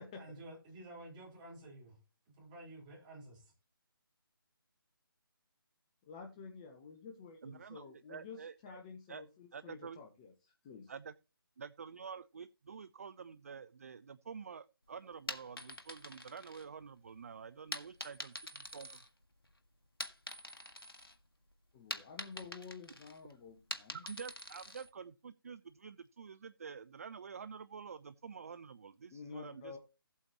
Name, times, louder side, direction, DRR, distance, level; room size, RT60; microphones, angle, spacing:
voice 1, 0.2-2.0 2.3-3.5, right 1 dB, 20° right, 4.5 m, -51 dB
voice 2, 6.1-10.9 21.7-24.0 29.1-29.8, left 5 dB, 20° left, 1.0 m, -50 dB
voice 3, 7.4-8.8 9.1-9.2 9.5-10.0 10.9-11.1 11.6-19.0 24.0-29.8, right 6 dB, 40° right, 0.4 m, -48 dB
sound 1, 15.1-17.1 17.7-19.5 19.8-21.2 21.5-24.9, left 1 dB, 80° left, 1.6 m, -45 dB
15.5 x 8.2 x 3.0 m
figure-of-eight pair, 150°, 12 cm